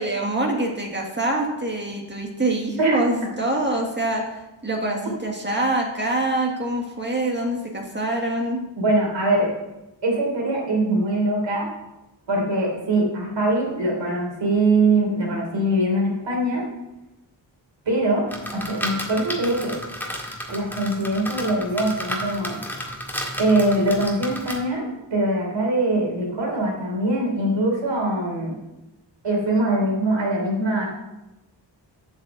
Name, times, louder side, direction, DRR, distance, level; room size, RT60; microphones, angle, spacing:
voice 1, 0.0-4.2 4.6-8.6, right 1 dB, 25° right, 0 dB, 1.6 m, -25 dB
voice 2, 8.8-9.5 10.0-11.7 12.3-16.6 17.9-19.8 20.5-22.6 23.4-28.5 29.2-30.9, right 1 dB, 75° right, -1 dB, 3.6 m, -22 dB
sound 1, 18.3-24.6, equal, 5° left, 1.8 m, -32 dB
8.4 x 6.4 x 7.5 m, 0.99 s
wide cardioid pair, 110°, 45 cm